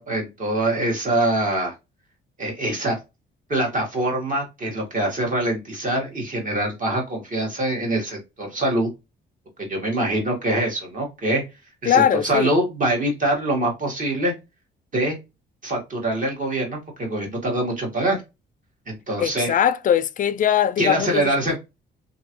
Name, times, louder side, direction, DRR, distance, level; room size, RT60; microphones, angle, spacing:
voice 1, 0.0-1.7 2.4-3.0 3.5-8.9 9.6-11.4 11.8-14.3 14.9-15.2 15.6-18.2 18.9-19.5 20.8-21.6, right 1 dB, 40° right, 1.6 m, -24 dB
voice 2, 11.9-12.6 19.2-21.6, left 9 dB, 45° left, 0.4 m, -21 dB
2.9 x 2.6 x 2.9 m
cardioid pair, 90°, 20 cm